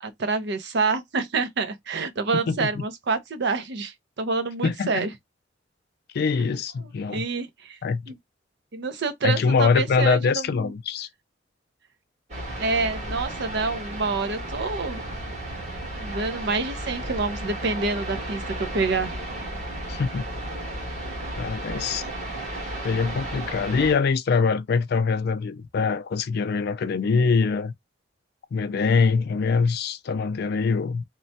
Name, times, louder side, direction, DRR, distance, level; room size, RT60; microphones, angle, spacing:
voice 1, 0.0-5.1 7.1-7.8 8.1-8.2 8.7-10.7 12.6-15.0 16.0-19.1, right 4 dB, 65° right, 0.6 m, -27 dB
voice 2, 2.5-2.8 4.6-5.1 6.1-7.2 7.8-8.1 9.2-11.1 19.9-20.2 21.4-22.0 22.8-27.7 28.5-31.0, left 5 dB, 55° left, 0.3 m, -23 dB
sound 1, 12.3-23.9, right 1 dB, 40° right, 1.4 m, -33 dB
3.0 x 2.1 x 2.6 m
head